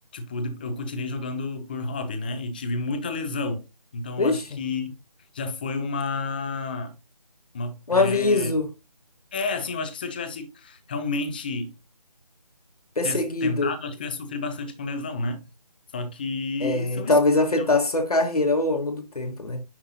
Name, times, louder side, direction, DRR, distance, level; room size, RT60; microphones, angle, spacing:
voice 1, 0.1-3.7 3.9-5.0 5.3-6.9 7.5-8.5 9.3-11.7 13.0-15.4 15.9-17.2 17.6-17.7, left 3 dB, 15° left, 0.7 m, -30 dB
voice 2, 4.2-4.6 7.9-8.7 13.0-13.7 16.6-19.6, left 2 dB, 65° left, 1.5 m, -23 dB
9.9 x 6.1 x 2.7 m
figure-of-eight pair, 160°, 21 cm